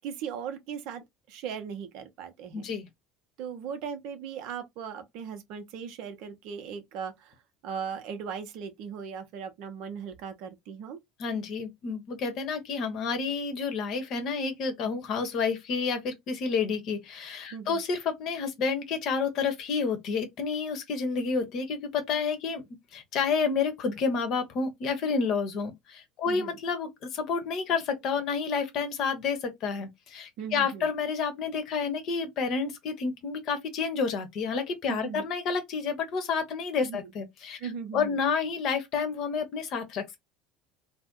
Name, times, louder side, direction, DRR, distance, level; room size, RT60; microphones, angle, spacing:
voice 1, 0.0-2.7 3.4-7.4 7.6-11.0 17.5-17.8 26.3-26.6 30.4-30.9 34.9-35.3 36.8-37.1 37.6-38.2, right 7 dB, 55° right, 0.7 m, -38 dB
voice 2, 2.5-2.9 11.2-22.6 22.9-37.6 37.9-40.1, left 5 dB, 50° left, 0.8 m, -30 dB
2.5 x 2.1 x 3.6 m
figure-of-eight pair, 70°, 0 cm